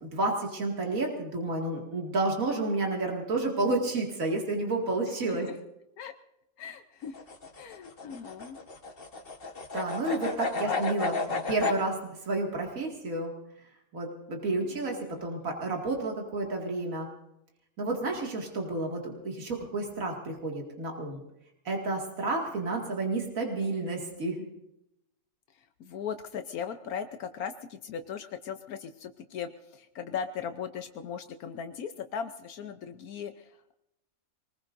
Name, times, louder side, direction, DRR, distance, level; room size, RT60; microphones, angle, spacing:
voice 1, 0.0-5.5 9.7-13.3 13.9-17.1 17.8-21.2 21.6-24.4, right 2 dB, 65° right, 0 dB, 2.7 m, -31 dB
voice 2, 5.2-5.6 6.0-6.1 6.6-7.2 7.6-8.6 10.6-10.8 14.6-15.5 25.8-33.7, left 7 dB, 80° left, 7 dB, 1.3 m, -38 dB
sound 1, 7.0-11.8, left 3 dB, 40° left, 1.5 m, -33 dB
24.5 x 20.0 x 2.6 m, 0.85 s
omnidirectional pair, 1.5 m